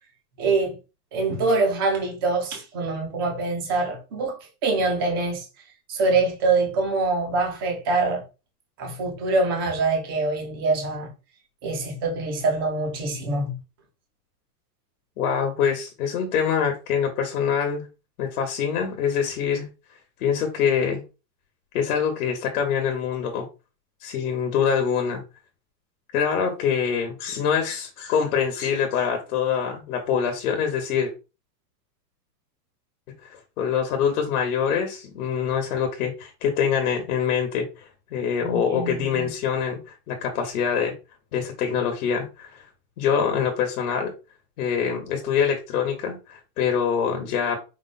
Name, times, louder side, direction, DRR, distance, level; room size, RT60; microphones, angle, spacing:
voice 1, 0.4-0.8 1.1-5.4 5.9-8.2 8.8-11.1 11.6-13.6 38.4-39.3, right 3 dB, 15° right, 0.3 m, -24 dB
voice 2, 15.2-17.9 18.2-19.7 20.2-21.0 21.7-23.5 24.0-25.2 26.1-31.1 33.2-40.9 41.3-42.6 43.0-44.1 44.6-47.6, left 7 dB, 60° left, 1.2 m, -25 dB
4.8 x 2.1 x 4.0 m
supercardioid pair, 155°, 49 cm